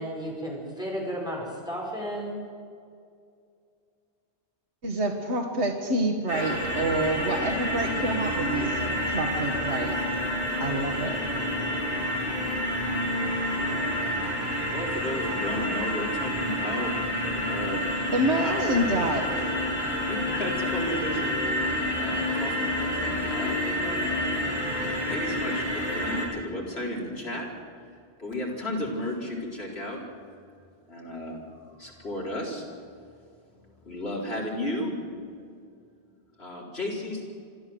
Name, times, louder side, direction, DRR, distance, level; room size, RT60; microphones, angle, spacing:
voice 1, 0.0-2.4, equal, 5° right, -3 dB, 5.5 m, -33 dB
voice 2, 4.8-10.0 10.6-11.2 18.1-19.3, right 1 dB, 85° right, 0 dB, 1.9 m, -27 dB
sound 1, 6.3-26.3, left 1 dB, 55° right, 7.7 m, -29 dB
voice 3, 14.7-16.9 17.5-17.8 18.1-19.1 19.7-24.4 25.0-27.5 28.2-30.0 30.9-31.4 31.7-32.7 33.8-35.2 36.4-37.2, left 1 dB, 70° left, -3 dB, 4.6 m, -34 dB
25.5 x 13.0 x 7.9 m, 2.3 s
omnidirectional pair, 1.1 m